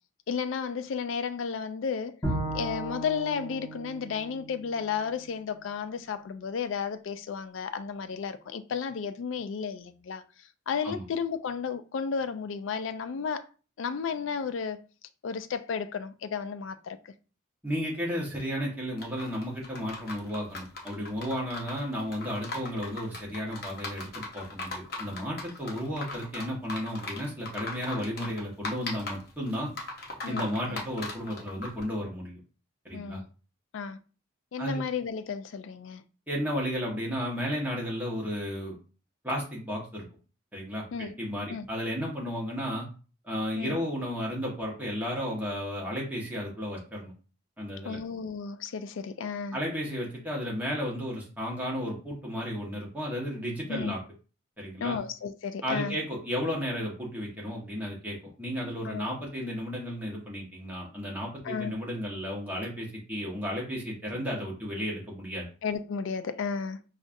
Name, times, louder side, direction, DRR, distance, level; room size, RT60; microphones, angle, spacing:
voice 1, 0.3-2.2 2.5-10.2 10.7-13.4 13.8-14.8 15.2-17.1 30.2-30.8 32.9-33.3 33.7-34.0 34.5-36.0 40.9-41.1 41.5-41.7 43.6-43.8 47.9-49.6 53.7-53.9 54.8-56.0 58.8-59.1 61.4-61.7 65.6-66.8, left 6 dB, 75° left, 0.4 m, -33 dB
Bowed string instrument, 2.2-5.5, right 1 dB, 15° left, 1.5 m, -36 dB
voice 2, 17.6-29.7 30.3-32.4 32.8-33.2 34.6-34.8 36.3-38.8 39.2-40.0 40.5-42.9 43.2-47.1 47.6-48.0 49.5-54.0 54.6-54.9 55.6-65.5, equal, 10° right, 1.2 m, -33 dB
sound 1, 19.0-31.8, left 2 dB, 50° left, 0.7 m, -39 dB
5.0 x 2.4 x 2.6 m
head